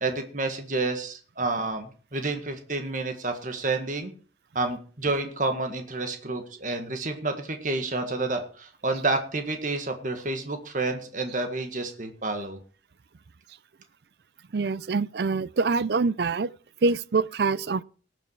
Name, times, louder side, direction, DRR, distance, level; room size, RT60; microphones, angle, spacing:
voice 1, 0.0-4.1 4.6-12.6, right 2 dB, 45° right, 1.7 m, -29 dB
voice 2, 14.5-16.5 16.8-17.8, right 4 dB, 60° right, 0.5 m, -25 dB
19.0 x 7.2 x 4.6 m
head